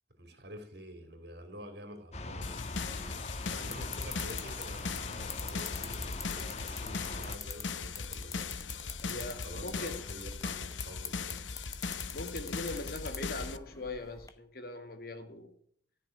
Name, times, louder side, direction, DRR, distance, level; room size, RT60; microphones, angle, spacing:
voice 1, 0.2-2.6 3.5-9.0 9.4-11.5, equal, 60° right, 3.3 m, -48 dB
sound 1, 2.1-7.4, left 2 dB, 35° left, 1.2 m, -42 dB
sound 2, 2.4-13.6, left 5 dB, 90° left, 0.8 m, -39 dB
sound 3, 2.8-14.3, left 4 dB, 15° left, 0.9 m, -46 dB
voice 2, 9.0-10.0 12.1-15.5, left 2 dB, 55° left, 1.9 m, -41 dB
14.5 x 6.4 x 9.2 m
head